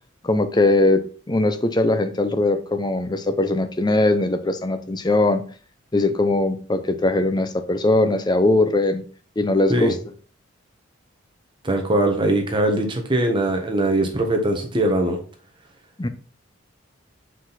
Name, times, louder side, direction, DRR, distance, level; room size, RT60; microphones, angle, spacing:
voice 1, 0.2-5.4 5.9-9.0 9.4-9.9 16.0-16.1, left 2 dB, 20° left, 9 dB, 0.6 m, -20 dB
voice 2, 11.6-15.2, right 1 dB, 25° right, 3 dB, 1.2 m, -21 dB
5.9 x 5.0 x 4.1 m, 0.40 s
head